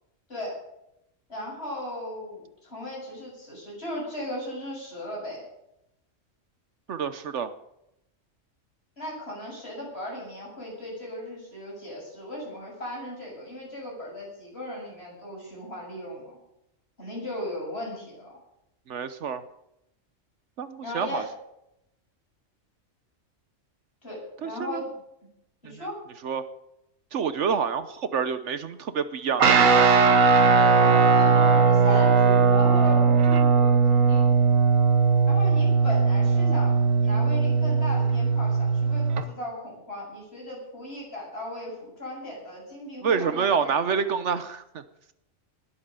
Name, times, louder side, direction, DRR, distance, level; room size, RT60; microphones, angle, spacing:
voice 1, 1.3-5.4 9.0-16.4 17.0-18.3 20.8-21.3 24.0-24.9 25.6-26.0 27.6-27.7 30.8-34.3 35.3-36.7 37.0-43.7, left 1 dB, 50° left, -3 dB, 8.0 m, -36 dB
voice 2, 6.9-7.5 18.9-19.4 20.6-21.2 24.4-24.8 25.6-25.8 26.2-26.4 27.1-30.0 43.0-44.6, right 6 dB, 65° right, 12 dB, 1.2 m, -28 dB
Guitar, 29.4-39.2, right 5 dB, 90° right, 1.5 m, -19 dB
20.0 x 8.5 x 6.8 m, 0.83 s
omnidirectional pair, 1.3 m